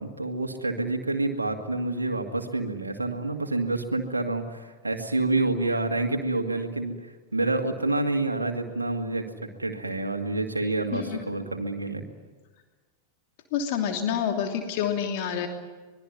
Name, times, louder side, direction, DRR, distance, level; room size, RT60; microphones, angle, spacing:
voice 1, 0.0-12.0, right 2 dB, 80° right, 4 dB, 2.2 m, -28 dB
voice 2, 13.5-15.5, left 8 dB, 45° left, 4 dB, 2.9 m, -28 dB
25.0 x 21.5 x 9.5 m, 1.3 s
figure-of-eight pair, 90°, 0 cm